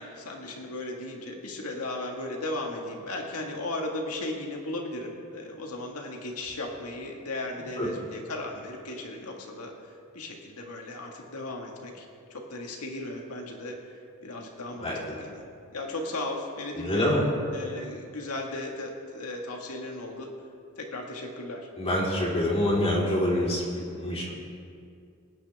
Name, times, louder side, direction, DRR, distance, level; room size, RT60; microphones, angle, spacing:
voice 1, 0.0-15.4 15.7-17.2 17.5-20.3 20.8-21.7, left 2 dB, 85° left, 1 dB, 1.8 m, -36 dB
voice 2, 16.8-17.2 21.8-24.4, left 1 dB, 30° left, -5 dB, 3.6 m, -26 dB
25.0 x 10.0 x 3.5 m, 2.4 s
head